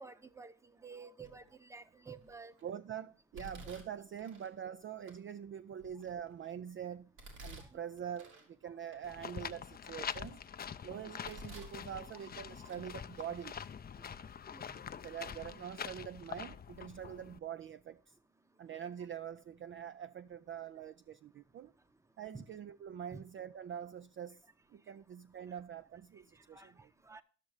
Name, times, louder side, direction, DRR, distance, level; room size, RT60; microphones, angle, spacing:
voice 1, 0.0-2.5 12.6-12.7 14.5-14.8 22.3-22.4 23.1-23.2 26.5-26.7 27.0-27.2, right 4 dB, 10° right, 0.8 m, -51 dB
Domestic sounds home sounds, 1.2-1.6 2.2-2.6 3.3-4.5 5.1-5.2 5.8-6.5 7.2-8.5 8.9-9.0 9.6-10.5 11.0-11.8 12.1-12.9 13.1-13.3 14.1-14.2 14.9-15.0 15.3-15.5, right 1 dB, 80° right, 3.0 m, -53 dB
voice 2, 2.6-7.1 7.4-10.4 10.8-13.6 15.0-18.1 18.6-21.7 22.2-24.4 24.7-26.9, right 9 dB, 40° right, 0.4 m, -45 dB
sound 1, 9.0-17.4, left 7 dB, 30° left, 0.5 m, -45 dB
12.0 x 6.2 x 4.8 m
cardioid pair, 90°, 30 cm